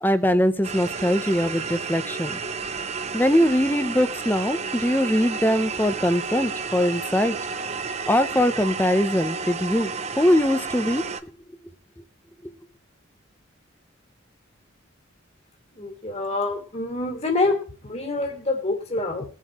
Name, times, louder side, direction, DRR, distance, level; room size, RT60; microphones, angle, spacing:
voice 1, 0.0-2.4 3.1-7.4 8.1-11.3, equal, 10° left, 11 dB, 0.9 m, -22 dB
sound 1, 0.6-11.2, right 5 dB, 35° right, 0.8 m, -31 dB
voice 2, 15.8-17.6 17.8-19.2, left 2 dB, 30° left, 2 dB, 2.4 m, -26 dB
21.5 x 7.5 x 3.1 m, 0.38 s
head